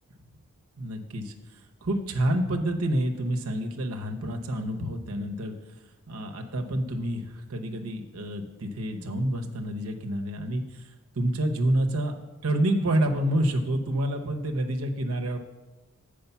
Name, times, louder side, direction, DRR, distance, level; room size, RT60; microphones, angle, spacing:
voice 1, 0.8-5.5 6.1-10.8 11.2-12.2 12.4-15.4, right 1 dB, 80° right, 4 dB, 0.9 m, -28 dB
7.1 x 5.0 x 6.8 m, 1.1 s
head